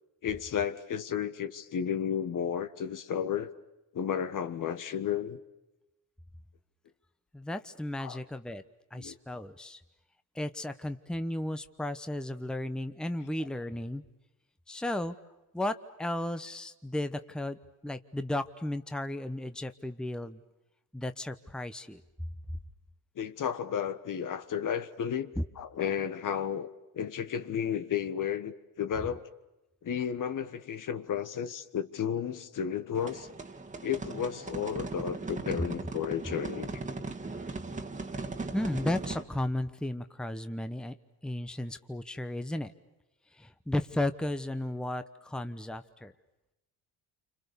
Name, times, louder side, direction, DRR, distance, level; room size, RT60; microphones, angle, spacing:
voice 1, 0.2-3.5 3.9-5.4 8.0-8.2 8.9-9.2 23.1-26.7 26.9-29.2 29.8-33.3 33.8-36.8, left 8 dB, 55° left, 11 dB, 1.6 m, -33 dB
voice 2, 7.3-8.6 8.9-9.8 10.3-14.0 14.7-15.1 15.5-20.4 20.9-22.0 25.4-25.5 38.5-40.9 41.2-42.7 43.3-46.1, left 1 dB, ahead, 10 dB, 1.0 m, -34 dB
sound 1, 32.9-39.2, right 3 dB, 20° right, 1.9 m, -38 dB
29.0 x 26.0 x 7.0 m, 0.98 s
cardioid pair, 90°, 39 cm